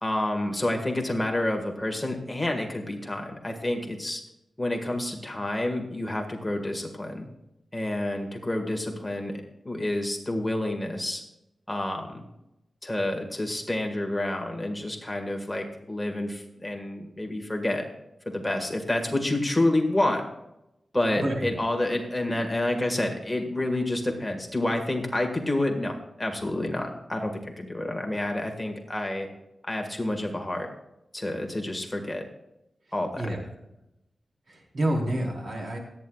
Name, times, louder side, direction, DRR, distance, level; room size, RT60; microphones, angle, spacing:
voice 1, 0.0-4.2 4.6-7.3 7.7-11.2 11.7-12.2 12.8-17.8 18.2-20.2 20.9-29.3 29.6-30.7 31.1-32.2 32.9-33.3, left 1 dB, 10° left, 2 dB, 1.7 m, -29 dB
voice 2, 21.2-21.5 33.1-33.4 34.5-35.8, right 1 dB, 60° right, -1 dB, 4.0 m, -28 dB
27.0 x 9.4 x 2.4 m, 0.87 s
wide cardioid pair, 150°, 0 cm